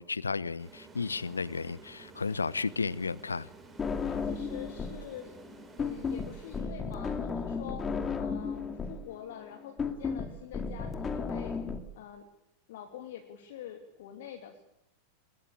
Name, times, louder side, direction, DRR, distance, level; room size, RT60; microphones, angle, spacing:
voice 1, 0.0-3.5, left 4 dB, 75° left, 0.8 m, -33 dB
sound 1, 0.6-7.2, right 3 dB, 20° right, 6.7 m, -52 dB
sound 2, 3.8-5.1 5.3-11.8, left 5 dB, 20° left, 2.7 m, -34 dB
voice 2, 4.2-5.4 5.8-7.9 8.2-11.6 12.0-12.3 12.7-14.6, left 10 dB, 55° left, 2.8 m, -45 dB
23.5 x 21.5 x 8.8 m
figure-of-eight pair, 90°, 0 cm